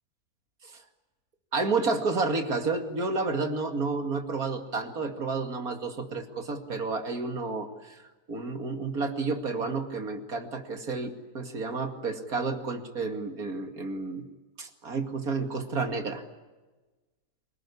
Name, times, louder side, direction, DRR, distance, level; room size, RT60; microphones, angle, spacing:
voice 1, 1.5-7.9 8.3-14.2 14.6-16.2, right 3 dB, 60° right, 6 dB, 2.8 m, -30 dB
27.5 x 19.5 x 9.9 m, 1.2 s
omnidirectional pair, 1.7 m